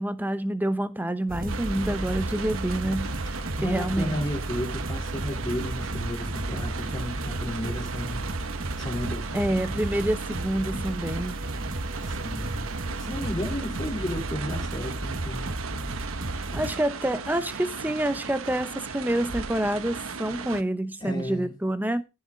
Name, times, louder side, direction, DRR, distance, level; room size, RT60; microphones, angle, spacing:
voice 1, 0.0-3.2 3.6-4.2 9.3-11.4 16.3-22.0, right 1 dB, 10° right, 0.8 m, -27 dB
sound 1, 1.3-16.7, right 1 dB, 45° right, 1.2 m, -33 dB
sound 2, 1.5-20.6, right 4 dB, 85° right, 1.1 m, -36 dB
voice 2, 3.4-8.3 8.8-9.5 12.0-12.7 13.0-15.5 21.0-21.6, equal, 20° left, 3.7 m, -33 dB
17.0 x 7.2 x 4.0 m
head